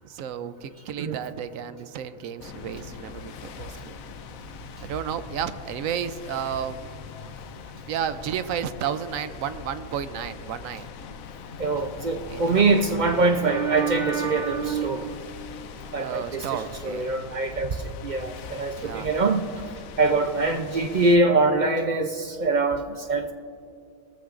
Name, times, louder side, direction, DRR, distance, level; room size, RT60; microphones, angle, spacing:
voice 1, 0.0-4.0 4.8-7.0 7.9-10.9 12.3-12.6 16.0-17.1 18.7-19.1, right 8 dB, 75° right, 12 dB, 1.0 m, -32 dB
sound 1, 2.4-21.2, left 6 dB, 80° left, 1.1 m, -41 dB
voice 2, 11.6-15.2 15.9-19.6 20.0-23.3, right 3 dB, 55° right, 6 dB, 0.5 m, -24 dB
19.5 x 14.0 x 2.5 m, 2.4 s
omnidirectional pair, 1.4 m